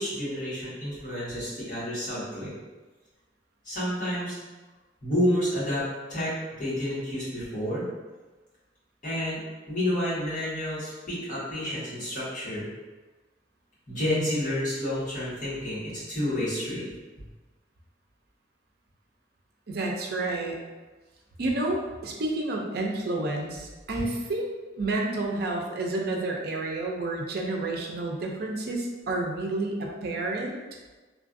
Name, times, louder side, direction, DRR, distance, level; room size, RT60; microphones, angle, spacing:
voice 1, 0.0-2.5 3.6-4.4 5.0-5.8 6.1-7.8 9.0-9.4 9.7-12.7 13.9-16.8, left 1 dB, 45° left, -12 dB, 1.5 m, -29 dB
voice 2, 19.7-20.6 21.4-30.5, right 2 dB, 60° right, 0 dB, 0.5 m, -30 dB
3.1 x 2.4 x 2.5 m, 1.2 s
head